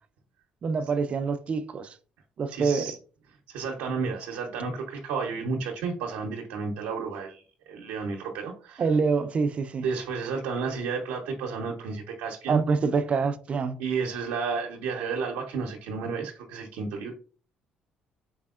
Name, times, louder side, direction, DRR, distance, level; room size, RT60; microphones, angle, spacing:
voice 1, 0.6-2.0 2.4-3.0 8.8-9.8 12.5-13.8, right 5 dB, 45° right, 0.5 m, -26 dB
voice 2, 2.5-3.0 3.5-7.4 7.7-8.8 9.8-12.6 13.8-17.1, right 5 dB, 85° right, 0.7 m, -31 dB
4.3 x 3.3 x 2.4 m
supercardioid pair, 75°, 3 cm